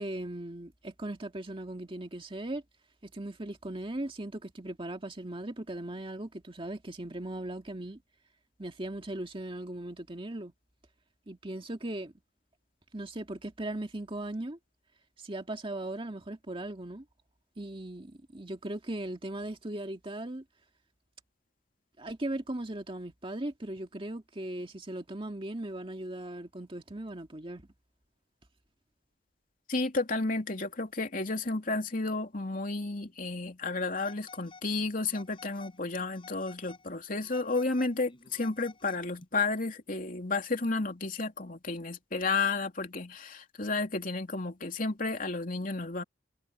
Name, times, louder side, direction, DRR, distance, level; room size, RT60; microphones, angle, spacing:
voice 1, 0.0-2.6 3.0-8.0 8.6-10.5 11.3-12.1 12.9-14.6 15.2-17.0 17.6-20.4 22.0-27.6, right 1 dB, 30° right, 2.1 m, -38 dB
voice 2, 29.7-46.0, left 3 dB, 50° left, 3.1 m, -32 dB
Telephone, 34.0-34.7 35.1-35.8 36.1-36.9 37.2-39.3, left 4 dB, 30° left, 4.7 m, -53 dB
head